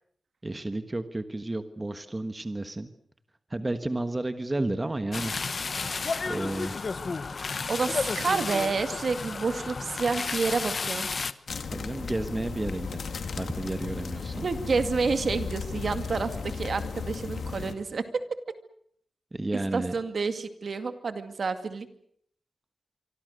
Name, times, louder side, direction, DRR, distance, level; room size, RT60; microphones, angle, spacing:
voice 1, 0.4-2.9 3.5-5.3 6.3-6.8 11.7-14.4 19.3-19.9, right 2 dB, 20° right, 9 dB, 1.4 m, -32 dB
sound 1, 5.1-11.3, left 4 dB, 50° left, 1.2 m, -32 dB
voice 2, 7.7-11.1 14.4-18.2 19.5-21.9, right 4 dB, 55° right, 9 dB, 2.2 m, -29 dB
sound 2, 11.5-17.7, left 5 dB, 70° left, 2.3 m, -35 dB
26.5 x 25.0 x 6.6 m, 0.66 s
wide cardioid pair, 125°, 0 cm